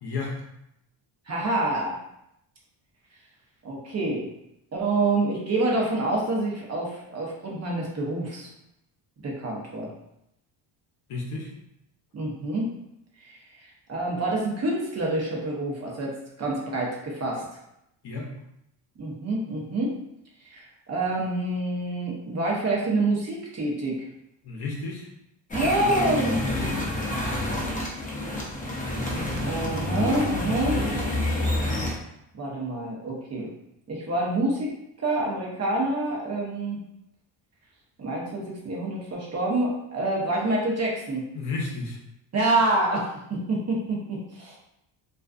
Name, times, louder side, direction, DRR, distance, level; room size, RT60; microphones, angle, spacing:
voice 1, 0.0-0.4 11.1-11.5 18.0-18.3 24.4-25.1 41.3-42.0, left 3 dB, 50° left, -1 dB, 0.7 m, -32 dB
voice 2, 1.3-2.0 3.6-4.3 4.7-8.5 9.2-9.9 12.1-12.7 13.2-16.1 16.4-17.4 19.0-20.0 20.5-24.0 25.5-26.4 29.4-30.8 32.4-33.5 33.9-34.7 35.0-36.8 38.0-41.2 42.3-44.6, right 2 dB, 35° right, -3 dB, 0.6 m, -27 dB
sound 1, 25.5-31.9, left 1 dB, 15° left, 0.6 m, -28 dB
2.4 x 2.3 x 2.4 m, 0.81 s
cardioid pair, 95°, 49 cm